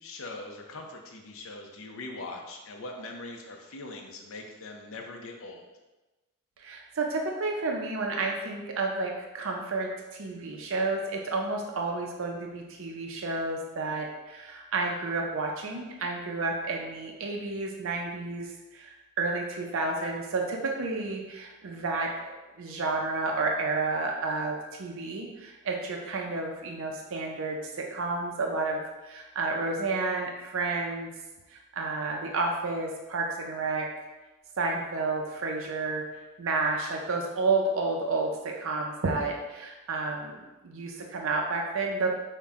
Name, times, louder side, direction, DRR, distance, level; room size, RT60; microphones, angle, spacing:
voice 1, 0.0-5.7, left 2 dB, 65° left, 2 dB, 0.6 m, -41 dB
voice 2, 6.6-31.1 31.5-33.9 34.6-36.0 36.4-42.1, right 3 dB, 60° right, 1 dB, 0.5 m, -31 dB
5.4 x 2.2 x 3.5 m, 1.1 s
head